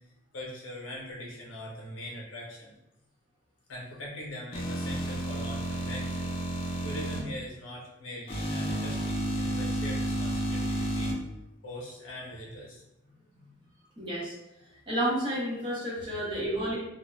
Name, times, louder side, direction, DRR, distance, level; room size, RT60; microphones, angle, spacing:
voice 1, 0.3-2.7 3.7-6.3 6.8-11.1 11.6-13.5, left 1 dB, 80° left, -4 dB, 0.7 m, -42 dB
sound 1, 4.5-7.2 8.3-11.1, right 1 dB, 30° left, 0.5 m, -31 dB
voice 2, 14.0-14.3 14.9-16.8, right 1 dB, 25° right, -7 dB, 0.6 m, -30 dB
2.3 x 2.0 x 3.1 m, 0.90 s
head